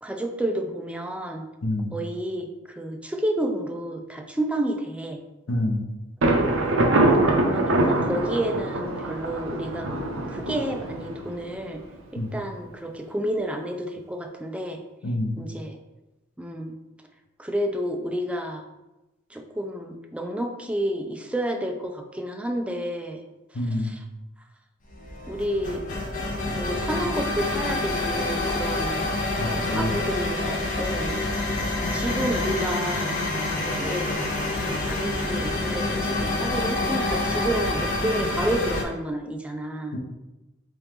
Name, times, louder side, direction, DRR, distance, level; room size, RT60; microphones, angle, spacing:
voice 1, 0.0-1.4 1.9-5.2 6.7-7.1 7.5-9.9 10.3-11.8 12.1-14.8 15.4-15.8 16.4-16.8 17.4-18.6 19.3-23.2 23.5-24.0 25.3-25.8 26.5-29.1 29.4-31.2 31.9-33.1 33.6-34.2 34.5-39.9, right 1 dB, 5° right, 4 dB, 0.3 m, -30 dB
voice 2, 5.5-5.8 12.2-12.3 15.0-15.3 23.5-24.0 29.4-29.9 39.9-40.0, left 1 dB, 80° left, 1 dB, 0.7 m, -27 dB
Thunder, 6.2-11.9, right 2 dB, 70° right, 0.6 m, -24 dB
sound 1, 24.9-38.8, left 2 dB, 40° left, 0.7 m, -27 dB
3.7 x 3.0 x 3.5 m, 1.0 s
head